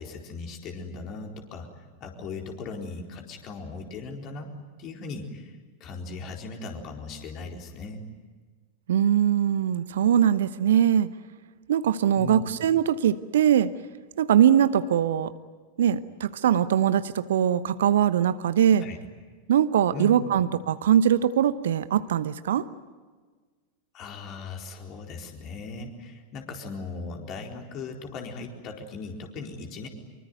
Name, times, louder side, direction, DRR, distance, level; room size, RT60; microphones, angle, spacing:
voice 1, 0.0-4.5 4.8-8.0 12.2-12.5 18.8-19.0 19.9-20.2 23.9-29.9, left 3 dB, 35° left, 2 dB, 4.3 m, -38 dB
voice 2, 8.9-11.1 11.7-13.7 14.2-15.3 15.8-18.8 19.5-22.6, right 9 dB, 60° right, 14 dB, 0.9 m, -22 dB
25.0 x 23.5 x 9.4 m, 1.4 s
figure-of-eight pair, 90°, 0 cm